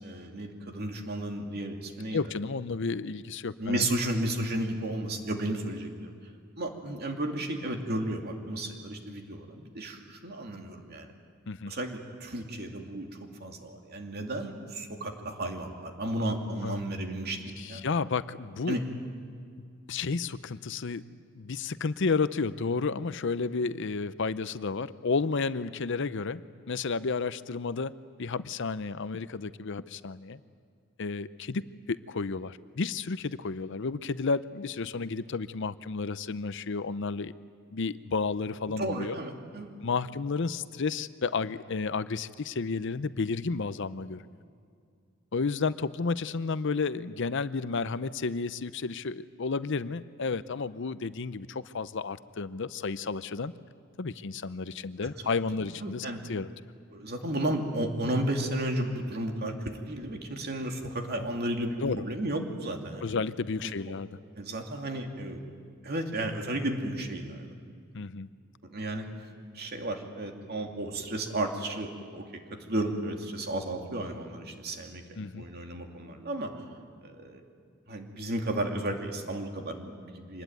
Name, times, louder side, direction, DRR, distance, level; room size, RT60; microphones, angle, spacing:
voice 1, 0.0-2.2 3.6-6.1 6.6-11.1 11.6-13.1 13.4-17.8 18.7-18.8 38.8-39.7 55.8-56.2 56.9-63.1 63.6-63.7 64.4-65.4 65.8-67.5 68.7-69.1 69.5-72.2 72.7-75.0 75.3-76.5 77.0-77.4 77.9-80.4, right 1 dB, 50° right, 3 dB, 2.6 m, -33 dB
voice 2, 2.1-3.8 11.5-11.7 16.6-16.9 17.6-18.8 19.9-21.0 21.3-26.4 26.7-27.9 28.2-30.4 31.0-37.3 37.7-39.2 39.8-44.3 45.3-53.5 54.0-56.5 61.8-62.0 63.0-64.2 67.9-68.3 75.2-75.5, left 4 dB, 60° left, 15 dB, 0.6 m, -32 dB
25.5 x 20.5 x 9.2 m, 2.3 s
head